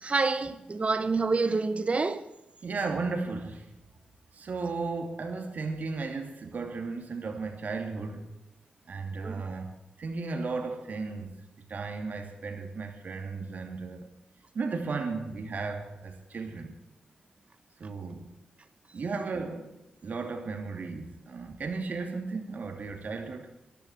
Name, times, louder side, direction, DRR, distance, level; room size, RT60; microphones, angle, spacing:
voice 1, 0.0-2.3 9.2-9.4, right 3 dB, 45° right, 1.0 m, -27 dB
voice 2, 2.6-3.7 4.3-8.3 8.9-9.7 10.0-11.4 11.7-14.1 14.5-16.7 17.8-18.3 18.9-23.5, right 4 dB, 65° right, 2.6 m, -35 dB
14.5 x 11.0 x 7.2 m
supercardioid pair, 40°, 3 cm